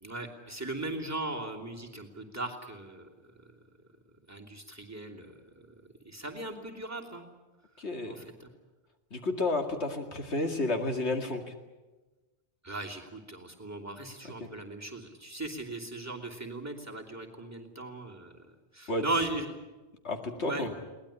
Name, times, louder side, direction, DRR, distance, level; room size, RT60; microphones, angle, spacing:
voice 1, 0.0-3.1 4.3-5.3 6.0-7.2 8.0-8.5 12.6-18.3 18.7-19.5 20.4-20.7, right 2 dB, 15° right, -1 dB, 2.9 m, -37 dB
voice 2, 7.8-8.3 9.1-11.4 14.4-14.5 18.9-19.1 20.0-20.7, left 2 dB, 75° left, 5 dB, 2.4 m, -31 dB
22.0 x 19.0 x 10.0 m, 1.2 s
omnidirectional pair, 1.1 m